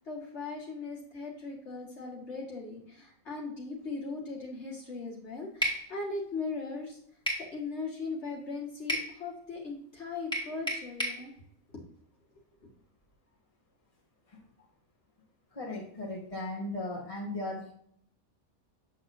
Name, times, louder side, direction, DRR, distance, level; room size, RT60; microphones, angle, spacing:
voice 1, 0.1-7.0 7.4-11.3 12.6-12.7, left 3 dB, 50° left, -3 dB, 2.1 m, -39 dB
sound 1, 5.6-5.8 7.3-7.5 8.9-9.1 10.3-11.2, equal, 5° left, 2.1 m, -31 dB
voice 2, 15.5-17.7, left 2 dB, 25° left, -3 dB, 1.8 m, -37 dB
8.1 x 6.2 x 2.7 m, 0.67 s
omnidirectional pair, 1.5 m